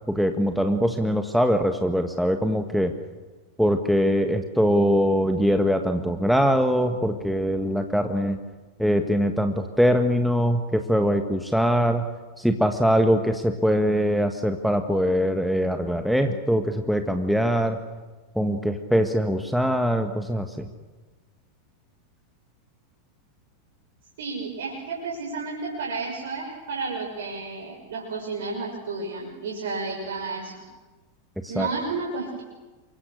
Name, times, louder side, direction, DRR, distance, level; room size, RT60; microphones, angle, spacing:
voice 1, 0.1-2.9 3.6-8.4 8.8-12.0 12.4-17.8 18.3-20.7 31.4-31.7, equal, ahead, 6 dB, 1.6 m, -22 dB
voice 2, 24.2-30.5 31.5-32.4, right 4 dB, 60° right, -2 dB, 6.1 m, -32 dB
29.0 x 24.5 x 6.6 m, 1.3 s
figure-of-eight pair, 90°, 0 cm